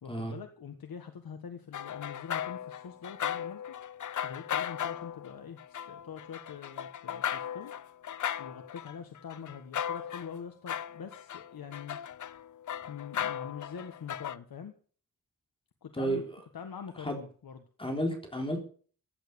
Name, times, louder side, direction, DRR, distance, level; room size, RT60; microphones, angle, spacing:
voice 1, 0.0-3.7 4.2-7.7 8.4-12.0 12.9-14.7 15.8-16.2 16.5-17.6, left 7 dB, 85° left, 6 dB, 1.6 m, -44 dB
sound 1, 1.7-10.4 10.7-14.4, left 9 dB, 60° left, 0.6 m, -37 dB
voice 2, 15.9-16.4 17.0-17.2 17.8-18.6, right 1 dB, 15° left, 3 dB, 3.6 m, -32 dB
16.0 x 8.6 x 6.9 m, 0.44 s
wide cardioid pair, 135°, 35 cm